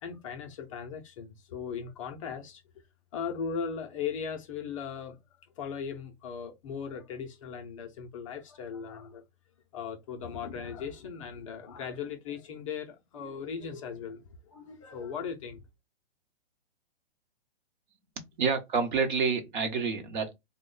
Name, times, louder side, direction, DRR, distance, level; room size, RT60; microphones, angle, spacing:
voice 1, 0.0-2.6 3.1-5.2 5.6-9.2 9.7-15.6, left 6 dB, 30° left, 0.5 m, -38 dB
voice 2, 18.4-20.3, right 5 dB, 50° right, 0.9 m, -28 dB
3.1 x 2.1 x 3.8 m
hypercardioid pair, 145°, 32 cm